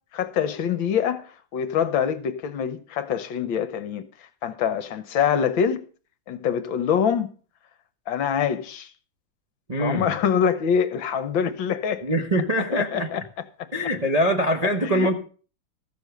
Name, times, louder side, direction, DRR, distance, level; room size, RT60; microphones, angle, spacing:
voice 1, 0.1-5.8 6.3-7.3 8.1-8.9 9.8-12.0 12.7-13.2 14.6-15.1, left 8 dB, 65° left, 1.6 m, -25 dB
voice 2, 9.7-10.1 12.0-13.1 13.7-15.2, equal, 30° right, 0.7 m, -23 dB
14.5 x 6.9 x 6.6 m
omnidirectional pair, 2.4 m